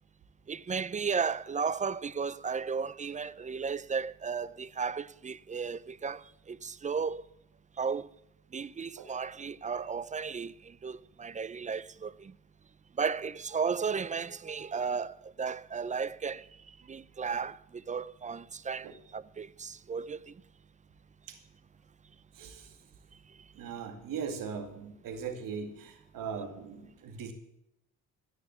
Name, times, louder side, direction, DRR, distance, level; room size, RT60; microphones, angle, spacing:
voice 1, 0.5-7.2 7.8-8.1 8.5-12.3 13.0-16.5 16.9-20.3, right 5 dB, 20° right, 0.5 m, -34 dB
voice 2, 22.3-22.8 23.6-27.3, right 6 dB, 70° right, 2.4 m, -39 dB
15.5 x 6.4 x 8.1 m
supercardioid pair, 70°, 34 cm